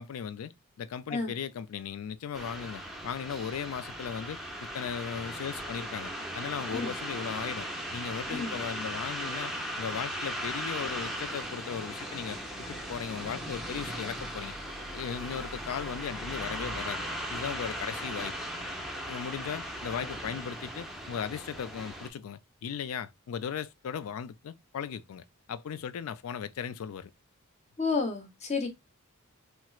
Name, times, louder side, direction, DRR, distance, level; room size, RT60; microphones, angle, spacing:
voice 1, 0.0-9.5 9.8-12.4 12.7-14.5 14.9-17.0 17.3-18.3 19.1-27.1, left 7 dB, 70° left, 0.3 m, -37 dB
sound 1, 2.3-22.1, equal, ahead, 0.5 m, -38 dB
voice 2, 27.8-28.7, left 4 dB, 30° left, 0.8 m, -31 dB
4.3 x 2.1 x 2.2 m
head